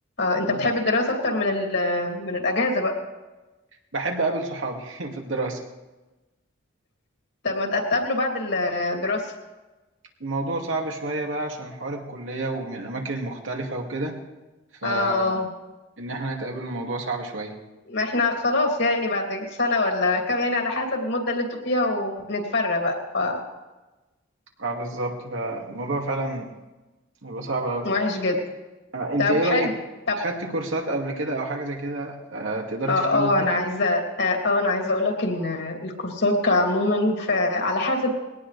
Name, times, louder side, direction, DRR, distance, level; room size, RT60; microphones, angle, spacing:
voice 1, 0.2-2.9 7.4-9.3 14.8-15.5 17.9-23.4 27.8-28.4 29.2-29.7 30.1-30.2 32.9-38.1, left 2 dB, 65° left, 1 dB, 2.9 m, -24 dB
voice 2, 3.9-5.6 10.2-14.2 14.8-15.4 16.0-17.6 24.6-26.5 27.2-27.9 28.9-29.8 30.2-33.5, right 2 dB, 80° right, 0 dB, 2.5 m, -29 dB
21.0 x 18.0 x 3.4 m, 1.1 s
head